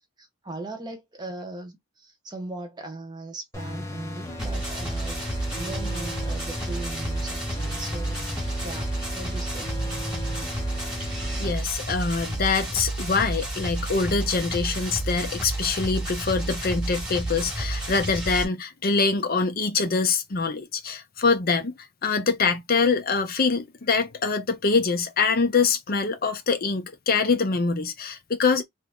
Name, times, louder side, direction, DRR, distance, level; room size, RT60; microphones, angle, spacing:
voice 1, 0.2-5.2 5.5-9.7, right 2 dB, 20° right, 0.9 m, -39 dB
sound 1, 3.5-11.5, left 1 dB, 15° left, 0.8 m, -36 dB
sound 2, 4.4-18.4, right 1 dB, 5° right, 1.2 m, -30 dB
voice 2, 11.4-21.8 22.0-28.6, left 4 dB, 45° left, 0.6 m, -24 dB
3.0 x 2.6 x 3.5 m
head